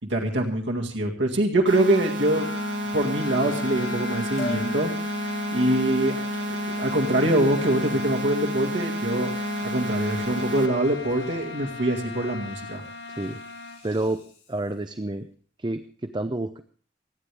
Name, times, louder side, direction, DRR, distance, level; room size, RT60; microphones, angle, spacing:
voice 1, 0.0-2.5 2.9-5.2 5.5-9.3 9.6-12.8, right 1 dB, 85° right, 1 dB, 2.0 m, -24 dB
sound 1, 1.7-10.7, equal, 70° right, 2.2 m, -30 dB
sound 2, 2.0-13.8, left 4 dB, 70° left, 1.6 m, -38 dB
Liquid, 4.4-4.7 5.3-14.9 15.3-15.4, left 3 dB, 40° left, 8.0 m, -46 dB
voice 2, 13.1-13.4 13.8-14.2 14.5-15.3 15.6-16.6, right 2 dB, 25° right, 9 dB, 0.6 m, -29 dB
29.0 x 9.9 x 3.4 m, 0.43 s
head